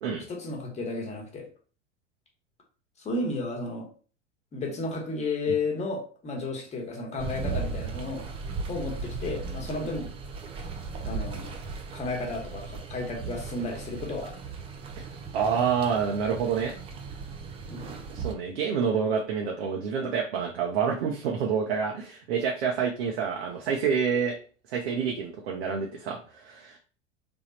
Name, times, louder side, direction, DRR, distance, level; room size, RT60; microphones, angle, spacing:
voice 1, 0.3-1.5 3.0-3.9 4.5-8.2 8.7-10.1 11.0-11.6 11.9-14.4 17.7-18.0, left 3 dB, 20° left, 0 dB, 1.1 m, -33 dB
sound 1, 7.2-18.3, right 4 dB, 15° right, 0.4 m, -37 dB
voice 2, 15.3-16.7 18.1-24.4 24.7-26.8, right 6 dB, 60° right, 0 dB, 0.7 m, -28 dB
3.4 x 2.3 x 4.0 m, 0.39 s
figure-of-eight pair, 85°, 36 cm